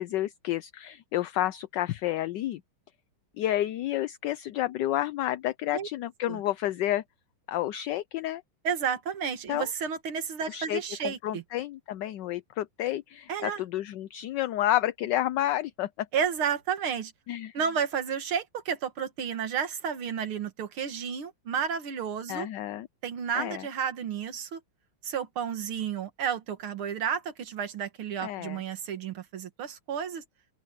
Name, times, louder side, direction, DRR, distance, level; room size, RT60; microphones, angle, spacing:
voice 1, 0.0-2.6 3.4-7.0 7.5-8.4 9.5-9.7 10.5-16.1 17.3-17.6 22.3-22.9 23.3-23.7 28.2-28.6, left 13 dB, 70° left, 1.1 m, -30 dB
voice 2, 8.6-11.4 13.3-13.6 16.1-17.1 17.5-22.5 23.0-24.6 25.0-30.2, right 7 dB, 85° right, 2.4 m, -31 dB
open air
omnidirectional pair, 2.3 m